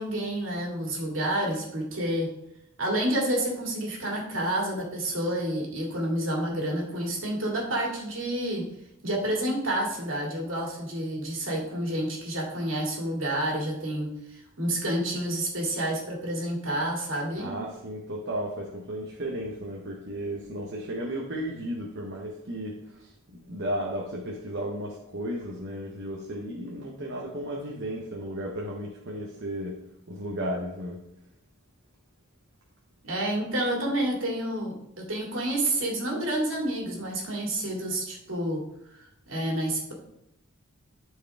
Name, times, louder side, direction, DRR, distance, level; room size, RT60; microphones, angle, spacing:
voice 1, 0.0-2.3 2.8-8.6 9.0-17.5 33.0-34.7 35.1-38.6 38.9-39.9, right 1 dB, 75° right, -2 dB, 2.4 m, -29 dB
voice 2, 17.4-23.1 23.5-29.8 30.1-31.0, equal, 60° right, -2 dB, 1.1 m, -34 dB
12.0 x 4.7 x 3.5 m, 0.82 s
head